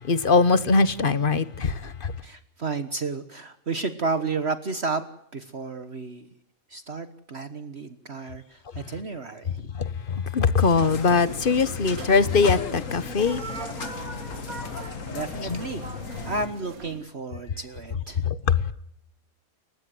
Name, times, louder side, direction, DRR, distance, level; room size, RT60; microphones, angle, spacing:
voice 1, 0.0-2.1 9.7-13.4 15.5-15.6 18.2-18.6, left 4 dB, 40° left, 1.2 m, -22 dB
voice 2, 2.2-5.0 5.3-6.3 6.7-9.7 14.7-15.8 16.2-18.2, right 4 dB, 50° right, 1.6 m, -32 dB
sound 1, 10.6-16.5, left 5 dB, 65° left, 1.9 m, -36 dB
sound 2, 10.9-17.0, right 3 dB, 80° right, 2.5 m, -41 dB
30.0 x 16.0 x 7.8 m
omnidirectional pair, 1.5 m